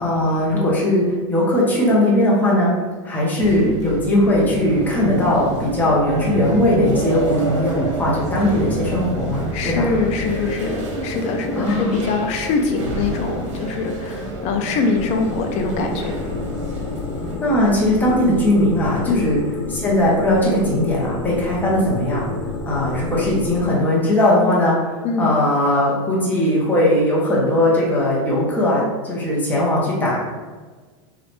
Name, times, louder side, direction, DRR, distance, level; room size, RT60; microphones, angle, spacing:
voice 1, 0.0-2.7 3.0-9.9 11.6-11.9 17.4-19.4 19.7-22.3 22.7-30.2, left 1 dB, 10° left, -5 dB, 1.0 m, -19 dB
sound 1, 3.4-17.4, right 2 dB, 80° right, 1.0 m, -28 dB
voice 2, 9.5-16.1 19.1-19.3 25.0-25.3, left 4 dB, 45° left, 4 dB, 0.6 m, -23 dB
sound 2, 14.9-23.7, left 3 dB, 85° left, 0.6 m, -30 dB
3.8 x 3.2 x 3.2 m, 1.4 s
supercardioid pair, 130°, 16 cm